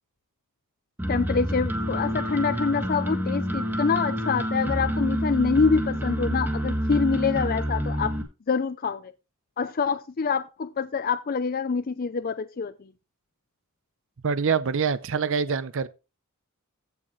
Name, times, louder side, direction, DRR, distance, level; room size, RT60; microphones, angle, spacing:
sound 1, 1.0-8.2, equal, 10° right, 1.6 m, -28 dB
voice 1, 1.1-8.1 8.5-9.1 9.6-12.7, left 5 dB, 45° left, 0.5 m, -26 dB
voice 2, 14.2-15.9, right 6 dB, 65° right, 0.6 m, -25 dB
15.0 x 6.4 x 3.1 m
head